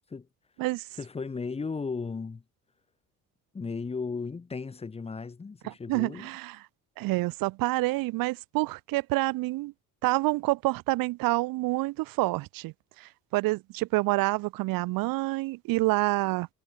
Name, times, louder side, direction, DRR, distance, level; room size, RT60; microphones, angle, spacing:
voice 1, 1.0-2.4 3.5-6.3, left 4 dB, 15° left, 4.6 m, -35 dB
voice 2, 5.6-6.6 7.0-9.7 10.0-16.5, right 20 dB, 80° right, 2.6 m, -28 dB
cardioid pair, 165°, 33 cm